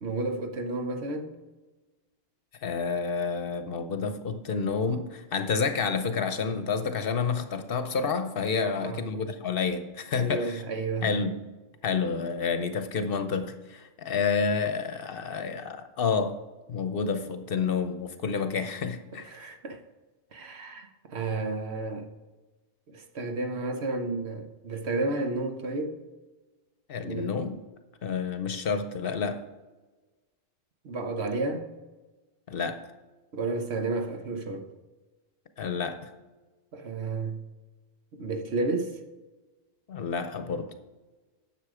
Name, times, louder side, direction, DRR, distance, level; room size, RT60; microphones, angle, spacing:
voice 1, 0.0-1.3 8.8-9.0 10.2-11.1 16.9-17.0 19.3-19.8 20.3-22.1 22.9-25.9 27.0-27.3 30.8-31.6 33.3-34.7 36.7-37.4 38.1-39.0, right 3 dB, 65° right, 1.2 m, -31 dB
voice 2, 2.6-10.6 11.0-11.5 11.8-16.4 16.7-19.5 26.9-27.6 28.0-29.5 32.5-32.9 35.6-36.1 39.9-40.7, left 5 dB, 60° left, 0.9 m, -29 dB
9.8 x 6.8 x 4.9 m
omnidirectional pair, 1.2 m